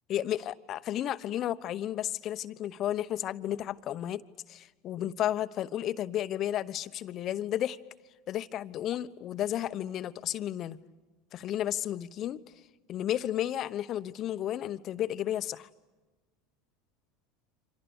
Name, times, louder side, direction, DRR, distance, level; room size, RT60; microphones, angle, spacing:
voice 1, 0.1-4.2 4.5-7.8 8.3-10.8 11.3-12.4 12.9-15.7, left 12 dB, 50° left, 12 dB, 1.0 m, -32 dB
29.5 x 25.5 x 7.1 m, 1.2 s
hypercardioid pair, 85°, 0 cm